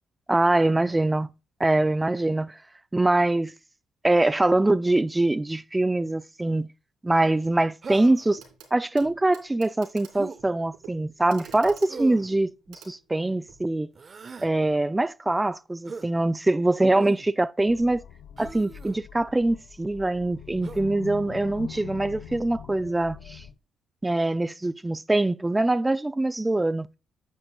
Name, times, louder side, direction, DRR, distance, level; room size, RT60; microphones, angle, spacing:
voice 1, 0.3-1.3 1.6-2.6 2.9-3.5 4.0-6.7 7.0-8.4 8.7-13.9 14.4-18.0 18.4-23.4 24.0-26.9, right 2 dB, 15° right, 0.4 m, -23 dB
Human voice, 7.8-8.4 10.1-10.4 11.9-12.3 13.9-14.5 15.9-16.1 17.0-17.3 18.4-19.0 20.6-20.9, right 5 dB, 40° right, 0.7 m, -39 dB
Clock, 8.4-8.7 9.0-13.7 14.9-15.0, right 7 dB, 90° right, 3.2 m, -49 dB
sound 1, 17.7-23.5, left 9 dB, 85° left, 0.9 m, -43 dB
9.4 x 8.8 x 2.3 m
cardioid pair, 90°, 0 cm